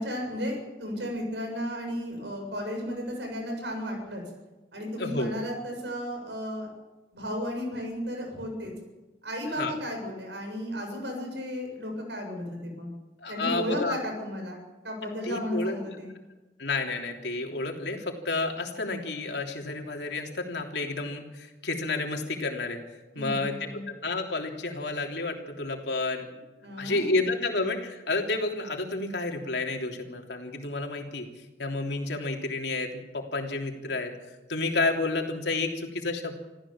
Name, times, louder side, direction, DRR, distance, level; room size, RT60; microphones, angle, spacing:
voice 1, 0.0-4.2 4.7-6.7 7.1-8.7 9.2-12.9 13.3-14.6 14.8-16.1 23.1-23.9 26.6-27.4, equal, 80° right, 3 dB, 7.3 m, -34 dB
voice 2, 5.0-5.3 9.6-9.7 13.2-14.0 15.2-16.0 16.6-22.8 23.1-26.3 26.8-36.3, left 3 dB, 75° left, 2 dB, 3.2 m, -30 dB
26.5 x 15.0 x 7.3 m, 1.2 s
head